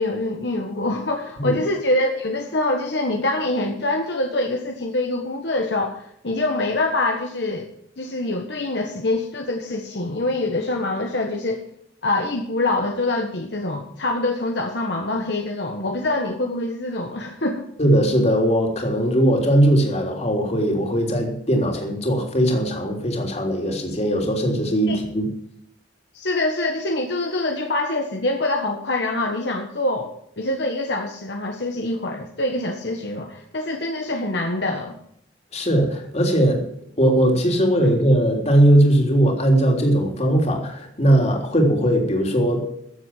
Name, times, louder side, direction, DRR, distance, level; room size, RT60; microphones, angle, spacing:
voice 1, 0.0-7.7 8.0-11.6 12.0-17.7 24.8-25.0 26.1-30.1 30.4-35.0, left 2 dB, 65° left, 2 dB, 1.5 m, -25 dB
voice 2, 17.8-25.3 35.5-36.7 37.0-42.7, right 1 dB, 35° left, 2 dB, 3.4 m, -19 dB
15.0 x 7.9 x 7.4 m, 0.72 s
head